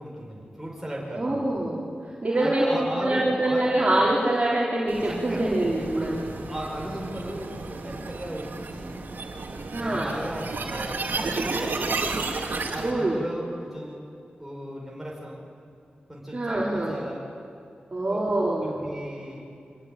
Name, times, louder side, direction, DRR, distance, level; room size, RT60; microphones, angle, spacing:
voice 1, 0.0-1.5 2.3-3.7 5.1-9.0 9.7-12.0 12.7-14.0 14.4-15.4 16.1-17.2 18.1-18.2 18.6-19.5, right 1 dB, 10° right, -3 dB, 5.1 m, -36 dB
voice 2, 1.1-1.8 2.2-6.2 9.7-10.1 12.8-13.2 16.3-17.0 17.9-18.7, right 1 dB, 40° right, -6 dB, 4.3 m, -24 dB
sound 1, 4.9-12.9, right 3 dB, 75° right, 2.6 m, -32 dB
25.0 x 20.5 x 9.1 m, 2.4 s
wide cardioid pair, 75°, 3 cm